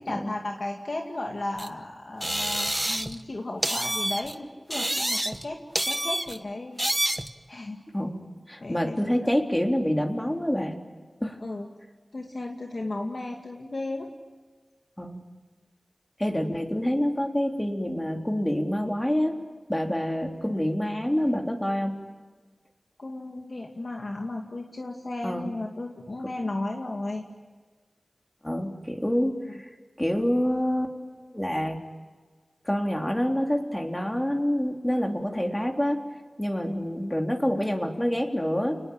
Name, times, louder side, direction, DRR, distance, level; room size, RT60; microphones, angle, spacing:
voice 1, 0.0-6.8 7.5-7.8 8.6-9.0 11.4-11.7 12.1-14.1 23.0-27.2 29.2-29.6, left 2 dB, 65° left, 1 dB, 2.3 m, -34 dB
sound 1, 1.6-1.7 2.2-3.2 3.6-4.4 4.7-5.5 5.8-6.4 6.8-7.3, right 1 dB, 20° right, 1.3 m, -28 dB
voice 2, 7.9-10.8 11.2-11.4 15.0-15.2 16.2-19.4 19.7-22.0 25.2-25.5 28.4-29.7 30.0-31.8 32.7-36.0 36.4-38.8, equal, 15° left, 2 dB, 3.7 m, -27 dB
29.5 x 20.5 x 8.9 m, 1.4 s
wide cardioid pair, 45°, 0 cm